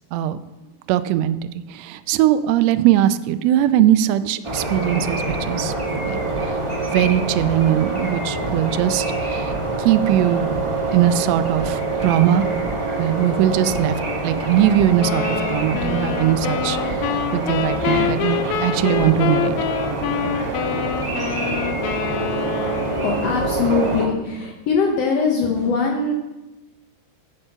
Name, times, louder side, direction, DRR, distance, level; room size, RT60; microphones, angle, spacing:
voice 1, 0.9-5.7 6.0-6.2 6.9-10.5 10.9-12.4 13.0-13.9 14.2-16.8 17.1-19.6, right 11 dB, 75° right, 12 dB, 1.6 m, -20 dB
sound 1, 4.4-24.1, right 2 dB, 45° right, 0.4 m, -25 dB
sound 2, 5.2-5.3 6.3-6.4 7.4-7.5 8.4-8.5 9.5-9.6 10.5-10.6 11.1-11.3 11.6-11.7 12.6-12.7 13.7-13.8 14.8-14.9 15.8-15.9 16.9-17.0 17.9-18.0 18.7-19.1, right 5 dB, 60° right, 1.0 m, -32 dB
sound 3, 15.0-23.4, left 10 dB, 85° left, 2.0 m, -26 dB
voice 2, 23.0-26.1, left 5 dB, 65° left, 1 dB, 1.9 m, -21 dB
9.1 x 7.4 x 6.7 m, 1.0 s
omnidirectional pair, 3.3 m